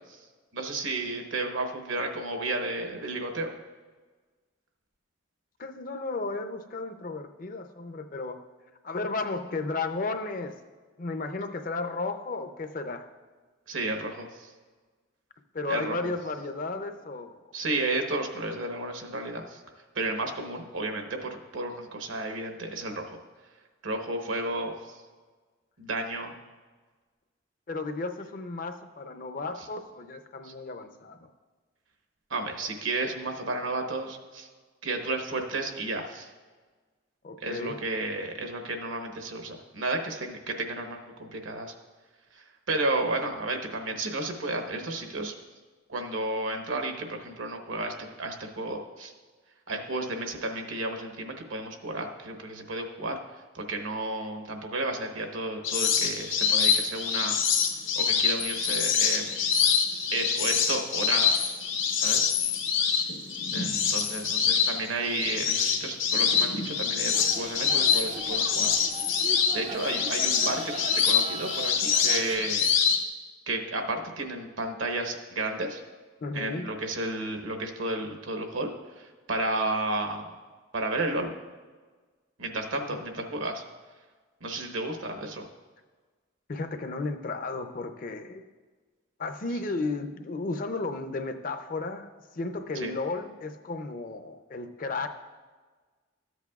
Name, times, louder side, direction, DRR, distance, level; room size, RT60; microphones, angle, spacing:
voice 1, 0.5-3.5 13.7-14.5 15.7-15.9 17.5-19.6 19.9-23.0 23.8-24.7 25.8-26.4 30.4-30.5 32.3-34.5 34.8-36.3 37.4-41.7 42.4-45.3 45.9-49.1 49.7-53.2 53.5-57.4 58.0-59.4 60.1-61.3 62.0-62.3 63.5-68.7 69.5-72.7 73.5-75.8 76.3-80.3 80.7-81.3 82.4-83.6 84.4-85.4 92.7-92.9, right 2 dB, 80° right, 4 dB, 1.0 m, -32 dB
voice 2, 5.6-8.4 8.8-10.6 11.0-13.1 15.5-17.4 27.7-31.3 37.2-37.8 76.2-76.7 82.7-83.0 86.5-88.4 89.2-95.1, left 3 dB, 45° left, 7 dB, 0.5 m, -34 dB
sound 1, 55.6-73.0, left 6 dB, 75° left, 0.9 m, -25 dB
sound 2, 67.1-72.4, right 4 dB, 30° right, 0.4 m, -40 dB
13.5 x 8.1 x 2.3 m, 1.4 s
head